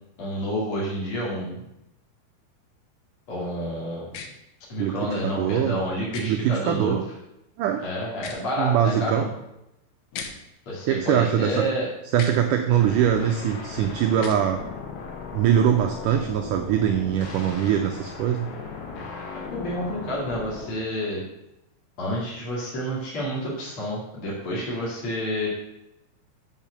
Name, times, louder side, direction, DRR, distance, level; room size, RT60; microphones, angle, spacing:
voice 1, 0.2-1.7 3.3-4.1 4.7-7.0 7.8-9.3 10.7-11.9 19.5-21.2 22.0-25.5, equal, 40° left, -6 dB, 2.9 m, -29 dB
sound 1, 4.1-4.3 6.1-6.3 8.1-8.5 10.1-10.3 12.1-12.4 14.1-14.4, left 6 dB, 90° left, 2.9 m, -36 dB
voice 2, 4.8-5.8 6.2-7.0 7.6-7.8 8.6-9.2 10.9-11.7 12.1-14.6 15.3-18.5, right 9 dB, 85° right, 4 dB, 1.8 m, -22 dB
sound 2, 12.7-20.7, left 4 dB, 75° left, 3.2 m, -37 dB
7.3 x 5.6 x 6.8 m, 0.87 s
omnidirectional pair, 4.4 m